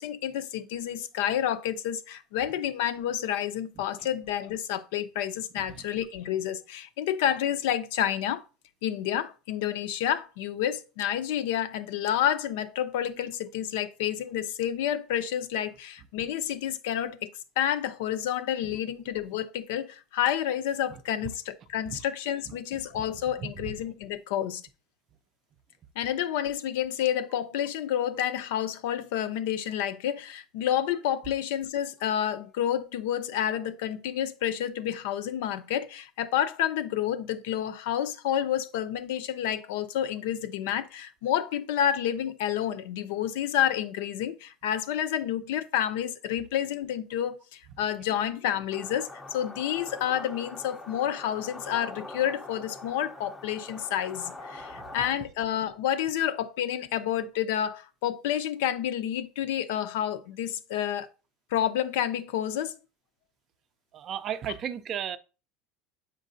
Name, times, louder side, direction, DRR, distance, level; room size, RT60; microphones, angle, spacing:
voice 1, 0.0-8.4 8.8-17.3 17.6-24.6 26.0-61.1 61.5-62.8, left 10 dB, 75° left, 0.7 m, -29 dB
voice 2, 23.4-23.7 54.8-54.9 63.9-65.2, right 9 dB, 30° right, 0.4 m, -34 dB
sound 1, 48.7-55.1, left 2 dB, 10° left, 0.6 m, -43 dB
8.3 x 5.3 x 2.6 m
cardioid pair, 170°, 0 cm